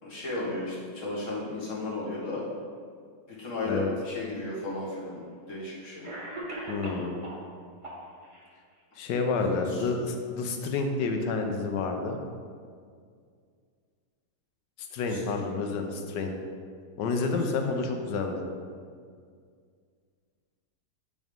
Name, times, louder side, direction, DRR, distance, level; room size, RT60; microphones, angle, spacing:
voice 1, 0.0-2.5 3.3-6.0 9.5-9.9 15.1-15.6 17.7-17.8, left 2 dB, 45° left, -6 dB, 1.9 m, -34 dB
Cough, 4.3-4.4 5.4-5.5 6.0-7.5 7.8-8.5, right 1 dB, 25° right, 0.9 m, -38 dB
voice 2, 6.7-7.2 9.0-12.2 14.9-16.3 17.0-18.4, left 4 dB, 75° left, 4 dB, 1.3 m, -29 dB
8.6 x 3.5 x 5.2 m, 2.1 s
omnidirectional pair, 1.9 m